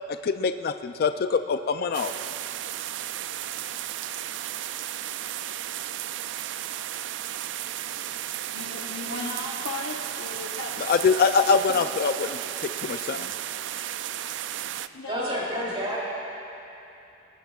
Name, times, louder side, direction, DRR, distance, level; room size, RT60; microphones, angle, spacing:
voice 1, 0.2-2.1 10.9-12.4 12.8-13.3, left 5 dB, 50° left, 9 dB, 0.3 m, -24 dB
sound 1, 1.9-14.9, right 11 dB, 65° right, 0.3 m, -34 dB
voice 2, 7.9-10.9 11.7-11.8 14.6-15.9, left 2 dB, 85° left, -2 dB, 1.0 m, -37 dB
voice 3, 15.1-16.0, equal, 30° right, -6 dB, 3.4 m, -29 dB
22.0 x 18.5 x 2.4 m, 2.9 s
head